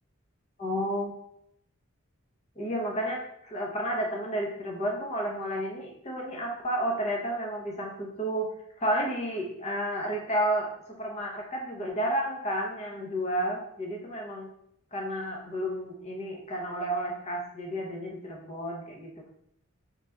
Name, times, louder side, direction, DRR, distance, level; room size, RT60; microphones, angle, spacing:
voice 1, 0.6-1.1 2.6-8.5 8.8-10.7 11.0-14.5 14.9-19.1, right 1 dB, 30° left, -1 dB, 0.9 m, -31 dB
4.0 x 3.3 x 3.5 m, 0.71 s
head